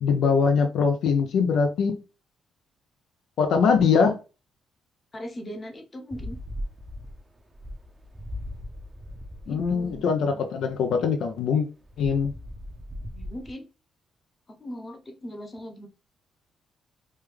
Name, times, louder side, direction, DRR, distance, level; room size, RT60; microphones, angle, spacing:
voice 1, 0.0-2.0 3.4-4.2 9.5-11.7 12.0-12.3, left 5 dB, 75° left, 0.4 m, -22 dB
voice 2, 5.1-6.4 9.5-10.6 13.1-13.7 14.5-15.9, equal, 30° left, 0.7 m, -40 dB
sound 1, 6.1-10.0 11.8-13.5, left 1 dB, 20° right, 0.6 m, -38 dB
3.2 x 2.2 x 3.3 m
cardioid pair, 90°, 0 cm